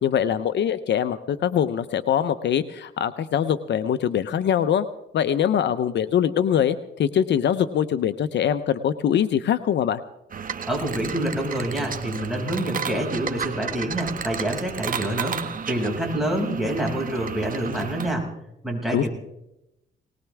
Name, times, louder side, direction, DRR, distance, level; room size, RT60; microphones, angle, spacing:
voice 1, 0.0-4.9 5.1-10.0 18.9-19.1, left 9 dB, 65° left, 12 dB, 0.8 m, -23 dB
sound 1, 10.3-18.1, right 6 dB, 45° right, 1.6 m, -33 dB
voice 2, 10.7-18.3 18.6-19.1, right 1 dB, ahead, -1 dB, 6.5 m, -27 dB
20.5 x 20.0 x 3.5 m, 0.85 s
cardioid pair, 90°, 20 cm